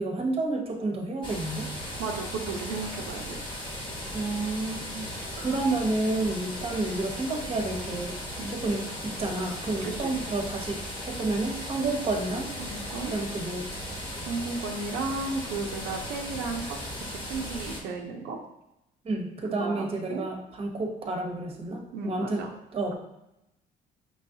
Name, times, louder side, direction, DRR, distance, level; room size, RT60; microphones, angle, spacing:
voice 1, 0.0-1.7 4.1-8.2 8.5-12.5 13.1-13.7 19.0-22.9, right 2 dB, 35° right, 2 dB, 0.9 m, -30 dB
sound 1, 1.2-17.8, equal, 30° left, 1.0 m, -37 dB
voice 2, 2.0-3.4 8.4-8.5 9.8-10.1 12.6-13.2 14.3-18.4 19.6-20.3 21.9-22.5, right 4 dB, 80° right, 1 dB, 0.6 m, -34 dB
5.4 x 3.0 x 2.7 m, 0.87 s
cardioid pair, 110°, 17 cm